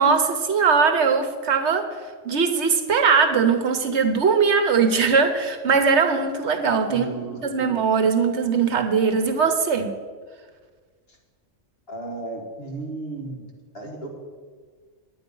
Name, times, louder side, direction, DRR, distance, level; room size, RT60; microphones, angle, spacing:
voice 1, 0.0-1.8 2.2-7.0 7.4-10.0, right 5 dB, 65° right, 7 dB, 1.1 m, -20 dB
voice 2, 6.9-7.7 11.9-13.4 13.7-14.1, right 2 dB, 55° left, -1 dB, 2.3 m, -34 dB
10.0 x 9.1 x 5.4 m, 1.5 s
omnidirectional pair, 1.3 m